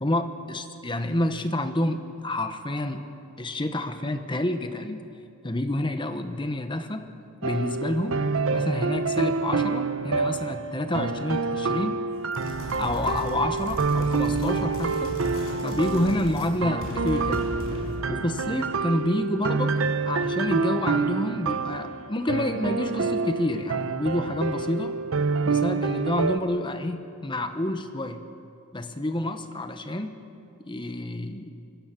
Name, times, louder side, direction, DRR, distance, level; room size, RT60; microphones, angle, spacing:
voice 1, 0.0-3.0 3.4-5.1 5.4-7.1 7.4-8.2 8.5-12.0 12.8-15.1 15.6-17.5 18.1-19.8 20.1-24.9 25.4-28.2 28.7-30.2 30.7-31.5, left 1 dB, 25° left, 8 dB, 1.1 m, -28 dB
sound 1, 7.4-26.4, right 4 dB, 75° right, 0.8 m, -27 dB
sound 2, 12.3-16.5 16.8-18.1, equal, 85° left, 5.2 m, -35 dB
25.5 x 22.0 x 6.0 m, 2.6 s
head